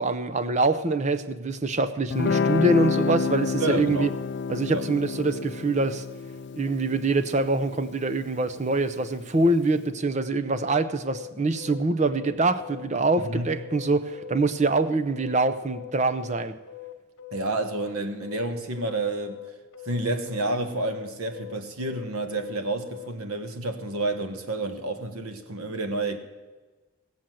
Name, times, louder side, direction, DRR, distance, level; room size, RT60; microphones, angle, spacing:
voice 1, 0.0-4.1 4.5-6.0 6.6-16.5, right 2 dB, 35° right, 11 dB, 0.6 m, -24 dB
Guitar, 2.1-9.2, left 5 dB, 50° left, 0.4 m, -29 dB
voice 2, 3.6-4.1 4.7-4.9 13.2-13.5 17.3-19.4 19.8-26.2, right 2 dB, 85° right, 8 dB, 1.3 m, -29 dB
sound 1, 10.5-23.1, left 14 dB, 70° left, 1.3 m, -42 dB
17.5 x 7.3 x 7.7 m, 1.3 s
head